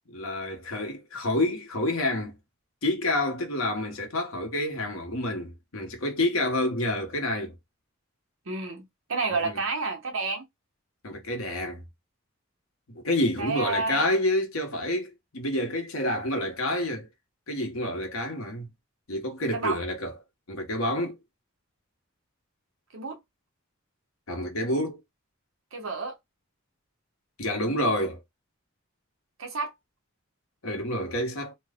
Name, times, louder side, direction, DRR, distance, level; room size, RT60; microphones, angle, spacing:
voice 1, 0.1-2.4 2.8-7.6 9.3-9.6 11.0-11.8 12.9-17.1 17.5-18.7 19.1-20.1 20.5-21.2 24.3-25.0 27.4-28.2 30.6-31.5, left 1 dB, 85° left, 1.1 m, -28 dB
voice 2, 8.5-10.5 13.4-14.1 19.5-19.8 22.9-23.2 25.7-26.2 29.4-29.7, right 4 dB, 70° right, 1.0 m, -30 dB
3.0 x 2.2 x 3.5 m
head